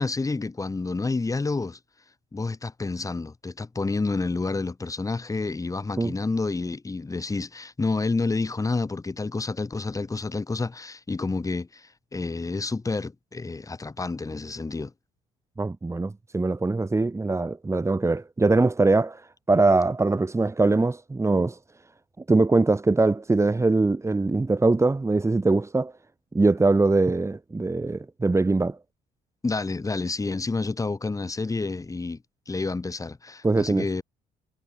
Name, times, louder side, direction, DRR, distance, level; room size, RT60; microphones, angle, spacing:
voice 1, 0.0-1.8 2.3-14.9 29.4-32.2 32.5-34.0, left 3 dB, 20° left, 7.4 m, -29 dB
voice 2, 15.6-21.6 22.3-25.9 26.3-28.8 33.4-33.9, right 3 dB, 15° right, 6.7 m, -22 dB
cardioid pair, 110°, 17 cm